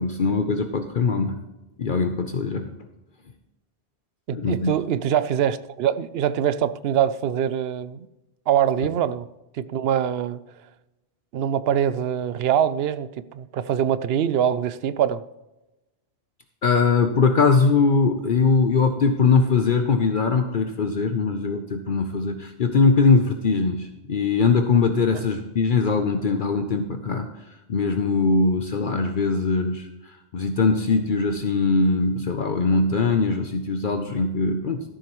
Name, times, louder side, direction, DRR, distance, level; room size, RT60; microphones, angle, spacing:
voice 1, 0.0-1.4 1.8-2.7 4.4-4.7 16.6-27.3 27.7-29.9 30.3-34.8, left 4 dB, 55° left, 0.9 m, -21 dB
voice 2, 4.3-8.1 8.5-9.3 9.5-10.4 11.3-15.2, right 9 dB, 75° right, 0.8 m, -23 dB
13.0 x 11.5 x 3.1 m
omnidirectional pair, 1.0 m